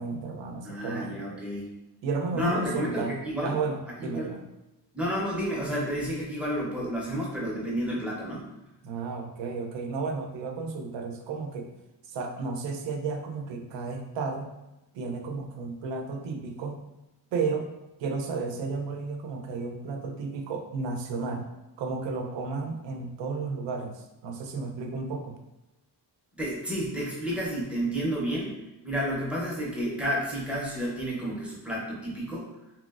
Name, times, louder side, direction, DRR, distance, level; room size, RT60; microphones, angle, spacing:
voice 1, 0.0-1.4 2.0-3.1 3.4-4.4 8.8-11.7 12.1-14.5 14.9-16.8 17.3-17.7 18.0-21.5 21.8-25.4, right 4 dB, 80° right, 5 dB, 0.5 m, -33 dB
voice 2, 0.6-1.7 2.3-3.6 4.0-4.3 4.9-8.5 26.4-28.6 28.8-32.5, equal, 5° right, -5 dB, 0.6 m, -31 dB
3.0 x 3.0 x 2.3 m, 0.97 s
wide cardioid pair, 160°, 43 cm